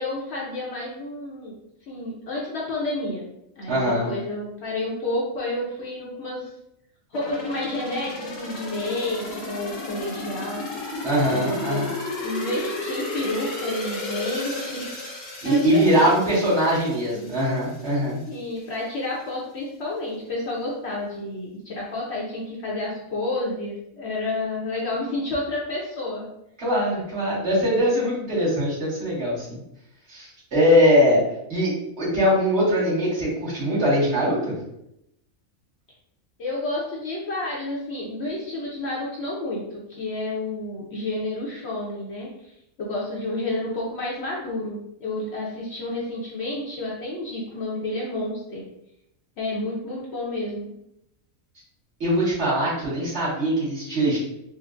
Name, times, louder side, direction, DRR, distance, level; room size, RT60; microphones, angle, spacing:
voice 1, 0.0-1.6 1.9-3.3 3.6-6.5 7.1-10.7 11.3-11.8 12.2-14.9 15.4-16.1 18.3-26.3 28.3-28.4 36.4-42.5 42.8-48.6 49.4-50.7, left 2 dB, 60° left, -4 dB, 0.8 m, -30 dB
voice 2, 3.7-4.1 11.0-11.9 15.4-18.2 26.6-29.6 30.1-31.2 31.5-34.5 52.0-54.2, equal, 55° right, -9 dB, 1.9 m, -21 dB
sound 1, 7.1-17.9 18.3-18.4, left 2 dB, 85° left, 1.4 m, -33 dB
4.3 x 2.0 x 2.4 m, 0.81 s
omnidirectional pair, 1.4 m